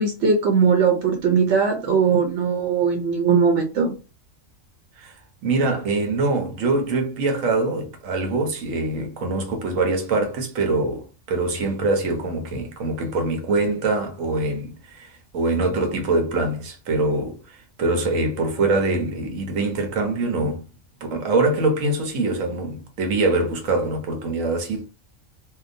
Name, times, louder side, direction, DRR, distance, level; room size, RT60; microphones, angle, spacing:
voice 1, 0.0-3.9, right 5 dB, 70° right, 0.9 m, -19 dB
voice 2, 5.0-20.6 21.0-24.8, right 2 dB, 90° right, 1.2 m, -24 dB
2.7 x 2.1 x 2.5 m
omnidirectional pair, 1.3 m